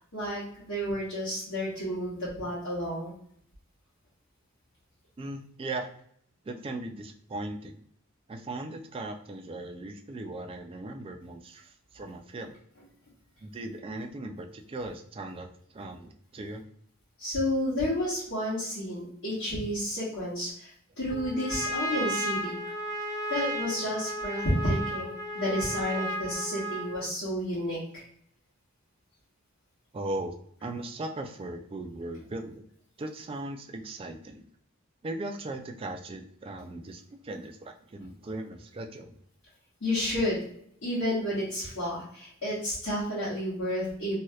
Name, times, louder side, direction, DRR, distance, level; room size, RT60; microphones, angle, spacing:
voice 1, 0.0-3.1 17.2-22.6 23.3-28.0 39.8-40.4 40.8-44.1, left 1 dB, 65° left, -9 dB, 1.4 m, -31 dB
voice 2, 5.2-5.9 6.4-7.8 8.3-12.5 13.4-16.6 29.9-30.3 30.6-32.6 33.0-34.4 35.0-39.2, right 2 dB, 25° right, 5 dB, 0.3 m, -38 dB
Trumpet, 21.1-27.1, right 1 dB, 15° left, 0.7 m, -34 dB
3.1 x 2.8 x 2.3 m, 0.67 s
head